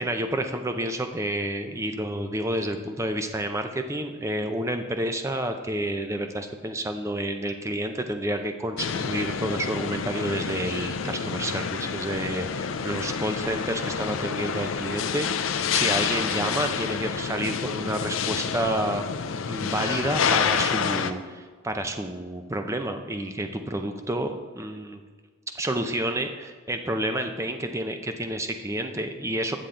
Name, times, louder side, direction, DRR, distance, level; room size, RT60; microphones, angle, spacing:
voice 1, 0.0-19.1 19.5-25.0 25.5-29.6, right 1 dB, 15° right, 6 dB, 0.5 m, -29 dB
sound 1, 8.8-21.1, left 6 dB, 60° left, 0.4 m, -28 dB
9.8 x 7.1 x 3.8 m, 1.5 s
head